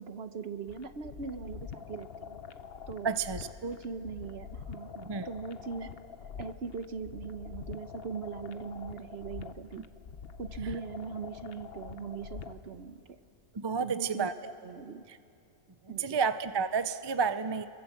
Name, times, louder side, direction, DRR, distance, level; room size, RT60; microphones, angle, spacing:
voice 1, 0.0-2.4 2.9-3.1 3.6-5.9 6.2-9.8 10.4-13.2 13.8-14.3 14.6-15.0 15.9-16.2, right 5 dB, 55° right, 10 dB, 1.2 m, -40 dB
sound 1, 0.7-12.7, left 6 dB, 55° left, 1.0 m, -45 dB
voice 2, 3.0-3.5 5.0-5.3 9.8-9.9 13.5-14.5 15.1-15.2 15.9-17.7, right 6 dB, 30° right, 11 dB, 0.5 m, -31 dB
29.5 x 23.5 x 7.3 m, 2.6 s
omnidirectional pair, 1.3 m